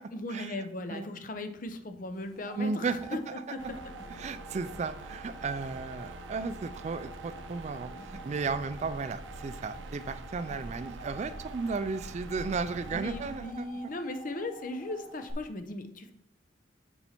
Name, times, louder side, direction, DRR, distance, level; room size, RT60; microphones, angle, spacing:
voice 1, 0.1-3.6 12.9-16.1, left 2 dB, 45° left, 7 dB, 0.7 m, -38 dB
sound 1, 2.1-15.3, right 2 dB, ahead, 1.9 m, -49 dB
voice 2, 2.6-3.3 4.2-13.7, right 4 dB, 35° right, 14 dB, 0.3 m, -34 dB
sound 2, 3.0-10.9, right 1 dB, 55° right, 2.1 m, -58 dB
sound 3, 3.6-13.7, right 2 dB, 80° right, 0.6 m, -45 dB
7.0 x 5.4 x 4.4 m, 0.77 s
head